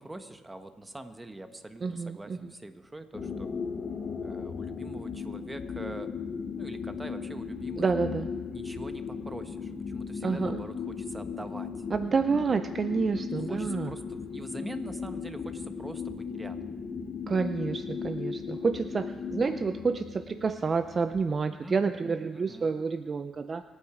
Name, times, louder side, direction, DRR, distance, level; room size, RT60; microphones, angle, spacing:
voice 1, 0.0-3.5 4.2-6.1 6.6-7.8 8.5-11.7 13.1-16.6 21.6-22.7, right 2 dB, 15° right, 8 dB, 1.1 m, -44 dB
voice 2, 1.8-2.5 7.8-8.3 10.2-10.6 11.9-13.9 17.3-23.6, right 5 dB, 40° right, 11 dB, 0.5 m, -29 dB
sound 1, 3.1-21.3, left 5 dB, 50° left, 1.1 m, -37 dB
25.0 x 8.9 x 4.9 m, 1.4 s
cardioid pair, 90°, 0 cm